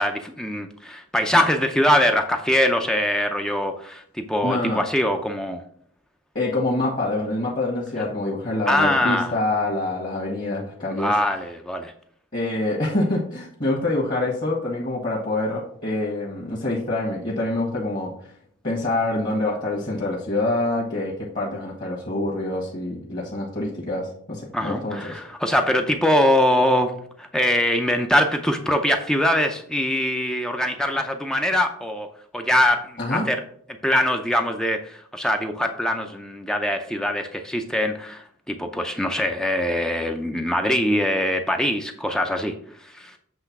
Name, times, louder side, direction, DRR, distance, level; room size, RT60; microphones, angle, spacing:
voice 1, 0.0-5.6 8.7-9.3 10.9-11.9 24.5-32.1 32.3-33.4 33.8-43.2, left 1 dB, 5° left, 5 dB, 0.4 m, -23 dB
voice 2, 4.4-4.8 6.3-11.1 12.3-18.1 18.6-25.2 33.0-33.3, left 2 dB, 40° left, -3 dB, 1.5 m, -26 dB
7.9 x 3.3 x 5.9 m, 0.63 s
head